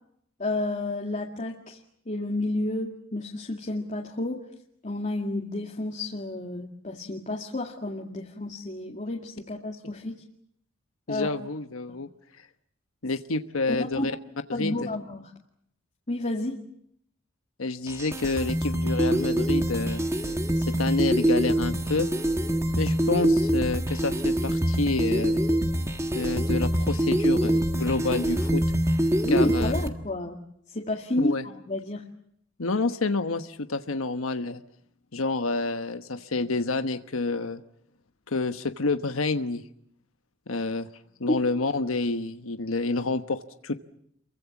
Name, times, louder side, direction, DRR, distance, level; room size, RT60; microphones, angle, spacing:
voice 1, 0.4-1.8 2.1-4.4 4.8-10.2 11.1-11.3 13.7-14.1 14.5-15.3 16.1-16.6 29.2-30.4 30.7-32.0 40.5-40.6 41.3-41.4, left 1 dB, 35° left, 0 dB, 2.1 m, -30 dB
voice 2, 11.1-12.1 13.0-14.1 14.5-14.7 17.6-20.0 20.6-22.1 22.8-25.4 26.1-28.6 29.3-29.7 31.2-31.4 32.6-34.6 35.1-37.6 38.3-39.6 40.5-40.9 41.2-43.7, left 3 dB, 90° left, 8 dB, 1.1 m, -28 dB
sound 1, 17.9-29.9, right 1 dB, 15° right, 1.7 m, -25 dB
28.5 x 23.0 x 7.2 m, 0.72 s
head